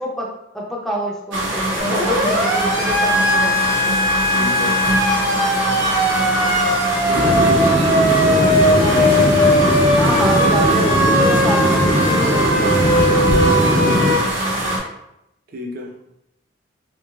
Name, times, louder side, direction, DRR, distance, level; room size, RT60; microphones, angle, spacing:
voice 1, 0.0-3.6 8.8-9.2 10.0-12.8, equal, ahead, -3 dB, 0.4 m, -27 dB
sound 1, 1.3-14.8, right 1 dB, 85° right, 0.8 m, -23 dB
Siren, 1.8-14.2, equal, 70° right, 1.1 m, -19 dB
voice 2, 4.3-4.8 7.0-7.6 8.0-9.4 15.5-15.9, equal, 50° right, 1 dB, 0.5 m, -30 dB
sound 2, 7.1-14.1, equal, 70° left, 0.7 m, -20 dB
3.0 x 2.7 x 2.3 m, 0.84 s
head